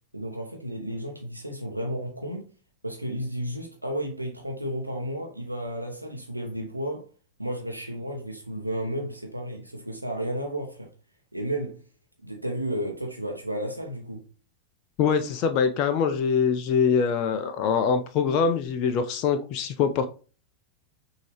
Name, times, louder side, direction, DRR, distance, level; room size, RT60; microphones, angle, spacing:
voice 1, 0.1-2.5 2.8-7.1 7.4-10.9 11.3-11.8 12.2-14.3, right 1 dB, 90° right, 0.8 m, -32 dB
voice 2, 15.0-20.1, left 6 dB, 40° left, 0.5 m, -24 dB
6.1 x 2.8 x 3.1 m
figure-of-eight pair, 90°, 0 cm